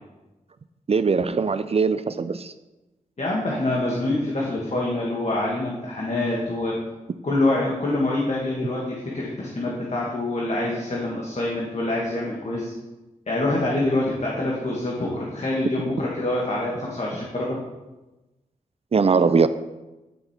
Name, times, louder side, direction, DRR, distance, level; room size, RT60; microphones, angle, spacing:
voice 1, 0.9-2.5 18.9-19.5, right 5 dB, 45° right, 12 dB, 0.4 m, -20 dB
voice 2, 3.2-6.8 7.2-12.7 13.3-17.6, left 2 dB, 55° left, -4 dB, 1.7 m, -25 dB
10.5 x 5.4 x 4.3 m, 1.1 s
wide cardioid pair, 85°, 14 cm